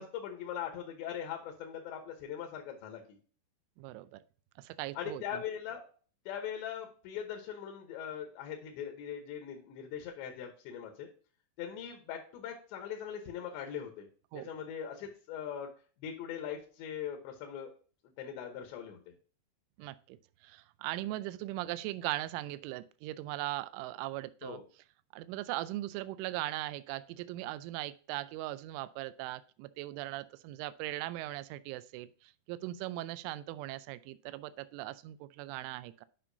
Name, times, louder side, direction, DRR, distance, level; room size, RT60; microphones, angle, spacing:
voice 1, 0.0-3.0 5.0-5.8 6.3-11.1 11.6-14.1 14.3-15.7 16.0-17.7 18.2-19.1 24.4-24.6, left 8 dB, 75° left, 4 dB, 3.0 m, -41 dB
voice 2, 3.8-4.2 4.6-5.4 14.3-14.5 19.8-24.6 25.1-36.1, right 16 dB, 85° right, 15 dB, 2.9 m, -39 dB
9.9 x 5.5 x 2.7 m, 0.40 s
omnidirectional pair, 5.7 m